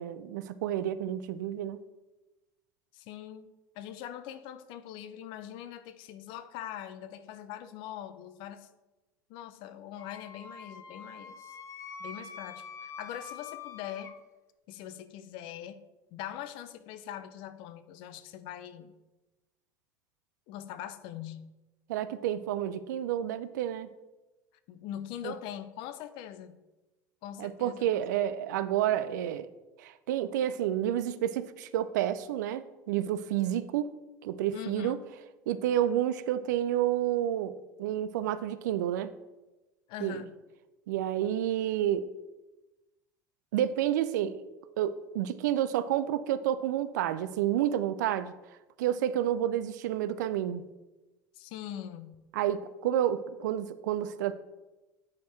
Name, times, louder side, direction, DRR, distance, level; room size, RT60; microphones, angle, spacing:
voice 1, 0.0-1.8 21.9-23.9 25.2-25.3 27.4-29.5 29.8-33.9 34.2-35.0 35.5-39.1 40.0-40.3 40.9-42.1 43.5-44.4 44.8-48.3 48.8-50.6 52.3-54.3, right 11 dB, 70° right, 14 dB, 0.4 m, -30 dB
voice 2, 2.9-3.5 3.8-8.7 9.3-11.6 12.0-14.1 14.7-15.8 16.1-18.9 20.5-21.5 24.7-26.6 27.2-28.0 34.5-35.0 39.9-40.3 51.3-52.1, left 11 dB, 55° left, 13 dB, 0.5 m, -42 dB
Wind instrument woodwind instrument, 10.0-14.1, left 5 dB, 30° left, 0.8 m, -45 dB
9.4 x 4.5 x 3.2 m, 1.1 s
hypercardioid pair, 70°, 10 cm